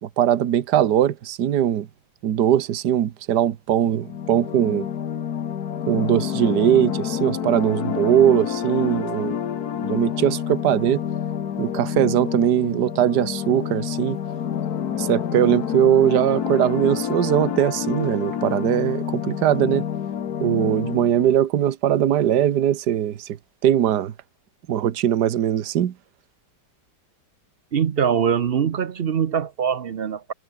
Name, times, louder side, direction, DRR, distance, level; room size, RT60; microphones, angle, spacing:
voice 1, 0.0-1.9 2.2-4.9 5.9-9.4 9.8-11.0 11.6-14.2 14.9-19.9 20.4-23.4 23.6-24.1 24.7-25.9, right 10 dB, 70° right, 1.7 m, -20 dB
sound 1, 4.0-21.4, left 9 dB, 60° left, 1.7 m, -28 dB
voice 2, 27.7-30.3, right 7 dB, 50° right, 0.7 m, -23 dB
omnidirectional pair, 1.9 m